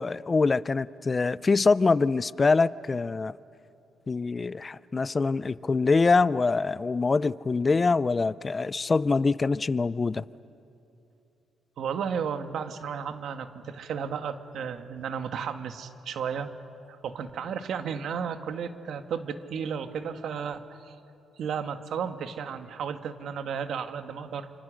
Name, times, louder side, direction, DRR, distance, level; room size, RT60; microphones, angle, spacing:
voice 1, 0.0-3.4 4.1-10.2, left 4 dB, 30° left, 0.5 m, -24 dB
voice 2, 11.8-16.5 16.9-21.0 21.4-24.5, right 7 dB, 70° right, 1.6 m, -33 dB
28.5 x 26.0 x 6.5 m
cardioid pair, 90°, 0 cm